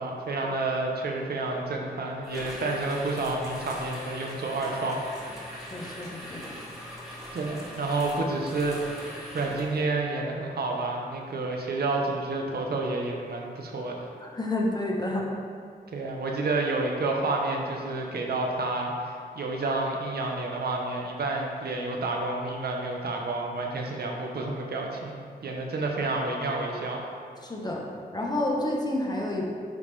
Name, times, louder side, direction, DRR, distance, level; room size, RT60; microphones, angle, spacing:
voice 1, 0.0-5.0 7.3-14.1 15.9-27.1, right 2 dB, 75° right, 0 dB, 0.8 m, -30 dB
sound 1, 2.2-9.8, equal, ahead, 1.6 m, -41 dB
voice 2, 5.6-6.6 14.2-15.2 27.4-27.8 28.1-29.4, left 1 dB, 25° left, -2 dB, 0.9 m, -29 dB
10.5 x 3.5 x 3.3 m, 2.2 s
wide cardioid pair, 125°, 16 cm